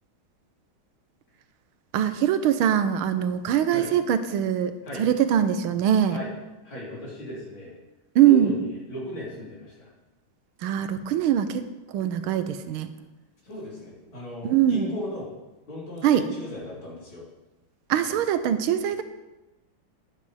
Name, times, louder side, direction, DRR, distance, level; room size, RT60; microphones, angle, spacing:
voice 1, 1.9-6.2 8.1-8.6 10.6-12.9 14.4-14.9 16.0-16.2 17.9-19.0, right 9 dB, 80° right, 10 dB, 1.6 m, -22 dB
voice 2, 6.6-7.7 8.2-9.9 13.4-15.3 15.7-17.3, equal, 70° left, -6 dB, 4.3 m, -36 dB
12.0 x 10.5 x 3.3 m, 1.0 s
omnidirectional pair, 2.3 m